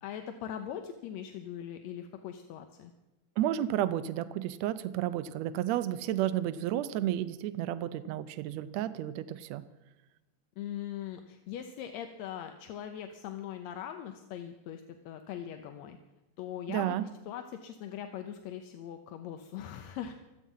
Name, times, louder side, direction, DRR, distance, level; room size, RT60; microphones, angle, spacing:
voice 1, 0.0-2.9 10.6-16.0 16.4-16.9 17.3-20.1, left 10 dB, 70° left, 6 dB, 1.8 m, -41 dB
voice 2, 3.4-9.6 16.7-17.1, right 12 dB, 90° right, 13 dB, 1.5 m, -32 dB
24.5 x 8.4 x 5.5 m, 1.1 s
omnidirectional pair, 3.7 m